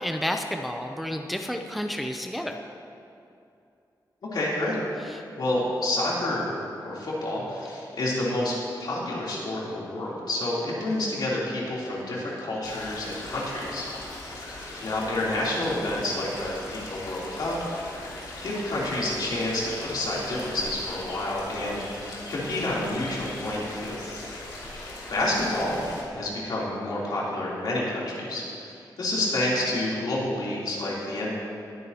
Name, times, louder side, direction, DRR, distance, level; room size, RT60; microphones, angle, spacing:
voice 1, 0.0-2.6 5.1-5.2 24.7-24.9, equal, ahead, 4 dB, 0.5 m, -31 dB
voice 2, 4.3-4.8 5.4-6.5 6.8-8.5 8.8-13.9 14.8-18.1 18.4-24.0 25.1-25.8 26.1-28.7 29.0-31.3, left 1 dB, 70° left, -6 dB, 3.2 m, -29 dB
sound 1, 12.6-26.0, left 2 dB, 90° left, 2.8 m, -39 dB
21.0 x 9.4 x 2.9 m, 2.6 s
wide cardioid pair, 165°, 7 cm